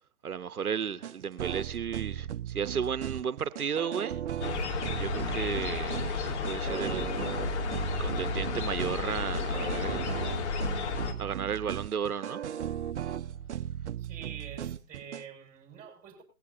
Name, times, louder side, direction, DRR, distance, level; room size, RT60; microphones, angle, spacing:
voice 1, 0.2-4.2 5.0-7.1 8.0-10.0 11.2-12.4, right 7 dB, 85° right, 0.9 m, -34 dB
sound 1, 1.0-15.2, right 10 dB, 50° right, 0.9 m, -37 dB
sound 2, 4.4-11.1, left 4 dB, 50° left, 2.6 m, -32 dB
voice 2, 14.0-16.2, right 7 dB, 20° right, 7.2 m, -46 dB
20.0 x 16.0 x 2.7 m
hypercardioid pair, 135°, 43 cm